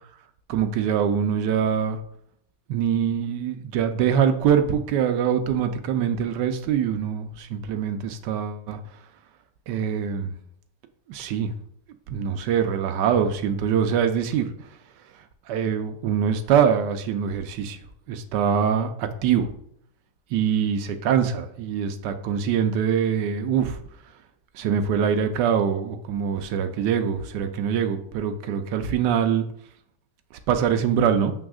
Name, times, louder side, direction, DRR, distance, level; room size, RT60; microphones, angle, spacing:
voice 1, 0.5-2.0 2.7-8.8 9.7-10.3 11.1-11.5 12.1-14.5 15.5-17.8 18.1-19.5 20.3-23.8 24.5-29.4 30.5-31.3, right 7 dB, 90° right, 8 dB, 1.2 m, -23 dB
7.0 x 6.1 x 2.4 m, 0.70 s
omnidirectional pair, 1.8 m